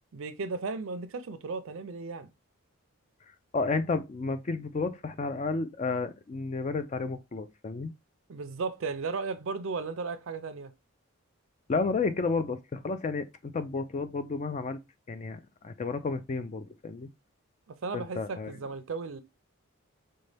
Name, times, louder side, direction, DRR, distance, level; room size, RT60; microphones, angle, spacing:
voice 1, 0.1-2.3 8.3-10.7 17.8-19.2, right 4 dB, 60° right, 0.4 m, -35 dB
voice 2, 3.5-7.9 11.7-14.8 15.1-17.1 17.9-18.5, left 4 dB, 30° left, 0.3 m, -31 dB
4.1 x 2.2 x 3.2 m
head